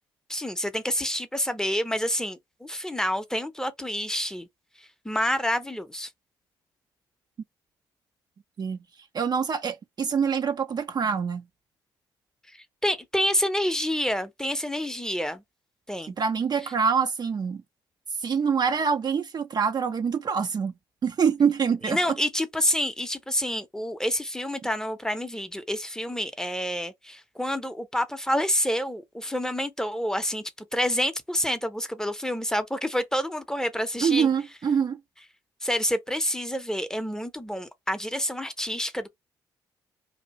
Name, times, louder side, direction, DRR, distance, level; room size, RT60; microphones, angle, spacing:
voice 1, 0.3-4.5 5.0-6.1 12.5-15.4 15.9-16.1 16.6-16.7 21.9-34.3 35.6-39.1, equal, 5° left, 0.6 m, -28 dB
voice 2, 9.1-11.4 16.1-17.6 18.2-20.7 21.0-22.0 34.0-35.0, right 6 dB, 40° right, 0.4 m, -25 dB
2.7 x 2.3 x 2.9 m
hypercardioid pair, 50°, 10 cm